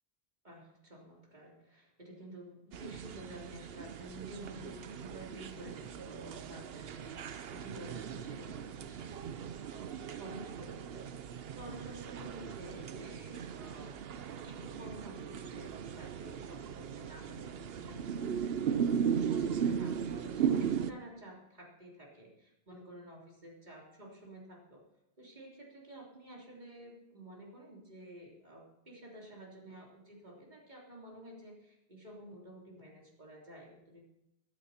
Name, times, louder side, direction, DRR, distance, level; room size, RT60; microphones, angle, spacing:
voice 1, 0.4-14.0 14.4-24.8 25.2-34.1, right 1 dB, 45° right, -3 dB, 3.7 m, -51 dB
sound 1, 2.7-20.9, right 8 dB, 75° right, 0.9 m, -37 dB
21.0 x 9.3 x 4.4 m, 0.90 s
omnidirectional pair, 1.0 m